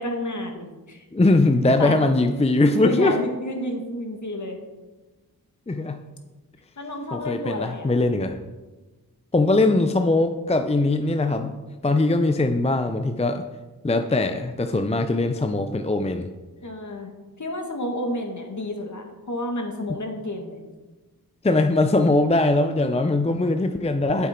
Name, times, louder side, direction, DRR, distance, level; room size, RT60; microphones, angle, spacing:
voice 1, 0.0-1.1 1.8-2.0 2.7-4.6 6.8-7.9 16.6-17.1 17.4-20.6, left 1 dB, 50° left, 3 dB, 1.9 m, -30 dB
voice 2, 1.1-3.2 5.7-6.0 7.1-8.4 9.3-11.5 11.8-13.4 13.8-16.3 19.9-20.0 21.4-24.3, left 2 dB, 15° left, 7 dB, 0.6 m, -21 dB
9.4 x 7.7 x 4.5 m, 1.2 s
cardioid pair, 50°, 38 cm